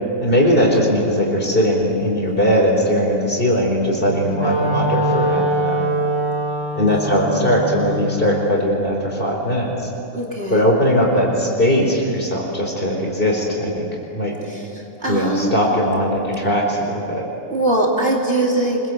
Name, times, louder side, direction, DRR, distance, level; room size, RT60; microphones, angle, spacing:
voice 1, 0.2-5.8 6.8-9.9 10.5-13.9 14.1-14.3 15.1-17.2, equal, 35° left, -1 dB, 4.9 m, -19 dB
Wind instrument woodwind instrument, 3.9-8.1, right 1 dB, 15° left, 4.8 m, -22 dB
voice 2, 10.1-10.7 14.5-14.7 15.0-15.5 17.5-18.8, right 2 dB, 40° right, -2 dB, 3.0 m, -21 dB
26.5 x 22.0 x 8.2 m, 2.9 s
omnidirectional pair, 1.6 m